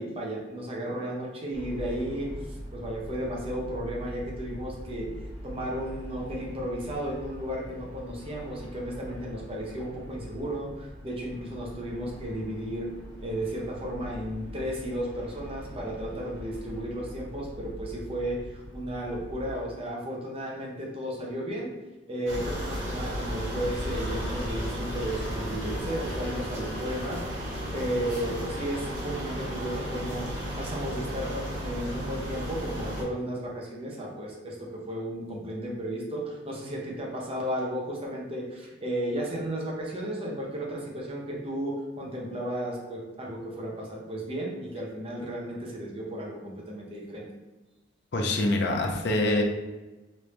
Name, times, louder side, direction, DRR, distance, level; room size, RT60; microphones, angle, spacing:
voice 1, 0.0-5.1 5.4-12.9 13.2-21.7 22.1-27.2 27.7-47.3, right 1 dB, 30° right, -2 dB, 0.7 m, -34 dB
sound 1, 1.5-19.6, equal, 25° left, 1.3 m, -43 dB
sound 2, 22.3-33.0, equal, 70° right, 1.0 m, -34 dB
voice 2, 48.1-49.4, left 2 dB, 60° left, 2 dB, 0.5 m, -25 dB
3.1 x 2.6 x 3.2 m, 1.1 s
head